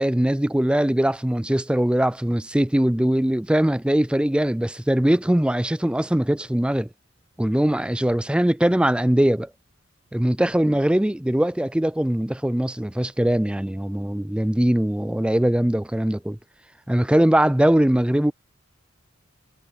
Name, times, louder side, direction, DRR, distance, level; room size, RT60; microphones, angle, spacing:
voice 1, 0.0-6.9 7.4-9.5 10.1-16.4 16.9-18.3, right 1 dB, 5° right, 0.3 m, -21 dB
head